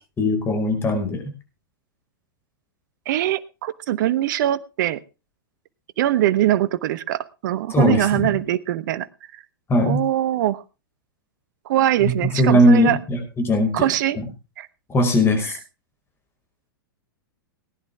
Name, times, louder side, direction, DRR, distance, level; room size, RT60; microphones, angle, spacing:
voice 1, 0.2-1.2 7.7-8.3 9.7-10.0 12.0-12.1 12.4-13.7 14.9-15.6, left 1 dB, 20° left, 5 dB, 5.3 m, -19 dB
voice 2, 3.1-5.0 6.0-9.1 9.9-10.6 11.6-13.0 13.7-14.2 14.6-14.7 15.4-15.5, right 13 dB, 55° right, 16 dB, 1.2 m, -22 dB
19.0 x 10.5 x 3.6 m, 0.30 s
hypercardioid pair, 110°, 12 cm